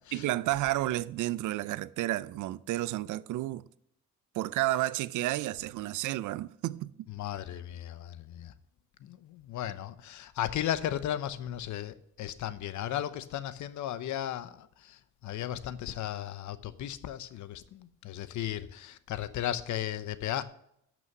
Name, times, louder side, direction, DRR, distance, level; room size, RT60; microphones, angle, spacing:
voice 1, 0.1-3.6 4.3-7.0, right 16 dB, 85° right, 0.5 m, -31 dB
voice 2, 7.1-8.5 9.0-20.4, left 11 dB, 70° left, 0.8 m, -35 dB
12.5 x 6.2 x 5.5 m
cardioid pair, 90°, 30 cm